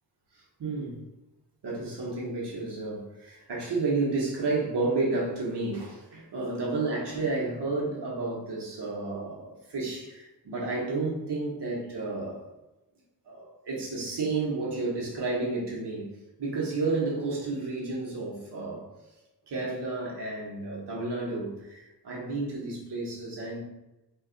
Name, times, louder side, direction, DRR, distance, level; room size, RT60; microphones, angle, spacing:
voice 1, 0.6-1.0 1.6-12.5 13.2-16.1 16.4-18.8 19.5-23.6, right 3 dB, 90° right, -4 dB, 0.9 m, -31 dB
2.5 x 2.3 x 3.7 m, 0.99 s
wide cardioid pair, 105°, 40 cm